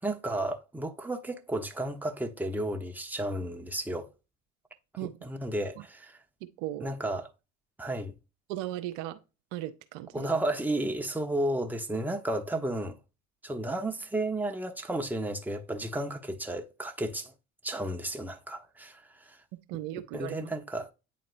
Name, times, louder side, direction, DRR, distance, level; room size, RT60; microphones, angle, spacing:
voice 1, 0.0-4.1 5.0-6.2 6.8-7.3 7.8-8.1 10.1-13.0 13.4-17.3 17.6-19.4 20.1-20.9, right 1 dB, 5° right, 1.0 m, -33 dB
voice 2, 8.5-9.2 9.5-10.3 19.7-20.5, right 14 dB, 65° right, 0.7 m, -36 dB
8.9 x 4.1 x 2.6 m
hypercardioid pair, 60°, 39 cm